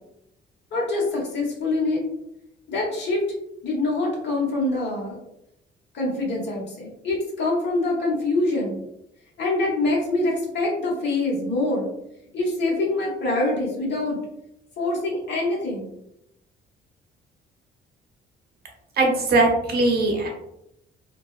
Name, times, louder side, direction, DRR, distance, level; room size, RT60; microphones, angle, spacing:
voice 1, 0.7-2.0 2.7-3.2 3.6-5.2 5.9-8.8 9.4-11.9 12.3-14.2 14.8-15.9, left 2 dB, 60° left, -3 dB, 1.1 m, -25 dB
voice 2, 19.0-20.3, right 2 dB, 55° right, 1 dB, 0.8 m, -20 dB
2.7 x 2.1 x 2.3 m, 0.80 s
cardioid pair, 90°, 20 cm